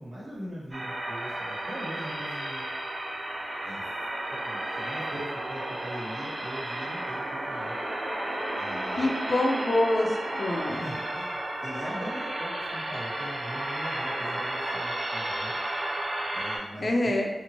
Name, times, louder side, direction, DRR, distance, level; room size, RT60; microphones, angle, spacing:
voice 1, 0.0-2.6 3.6-3.8 4.4-7.8 8.6-9.1 10.7-15.5 16.3-17.1, equal, 75° right, -8 dB, 1.3 m, -41 dB
sound 1, 0.7-16.6, right 1 dB, 40° right, 0.5 m, -33 dB
voice 2, 9.0-10.8 16.8-17.3, left 1 dB, 45° left, 1 dB, 0.5 m, -26 dB
2.7 x 2.5 x 2.9 m, 0.99 s
wide cardioid pair, 110°, 0 cm